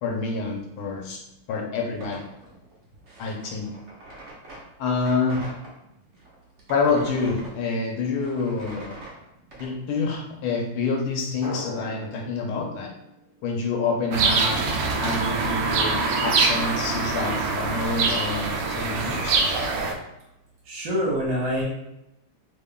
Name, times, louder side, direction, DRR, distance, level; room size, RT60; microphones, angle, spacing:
voice 1, 0.0-1.2 1.5-2.2 3.2-3.7 4.8-5.4 6.7-8.9 9.6-12.9 13.4-14.6 15.0-19.3, left 4 dB, 80° left, 0 dB, 1.5 m, -27 dB
sound 1, 2.0-5.7 6.2-9.7, right 1 dB, 50° right, 0.9 m, -43 dB
Drum, 11.4-14.1, left 2 dB, 40° left, 0.7 m, -43 dB
sound 2, 14.1-19.9, right 4 dB, 85° right, 0.9 m, -24 dB
voice 2, 20.6-21.6, equal, 65° right, -3 dB, 1.5 m, -25 dB
3.6 x 3.5 x 2.2 m, 0.88 s
omnidirectional pair, 2.4 m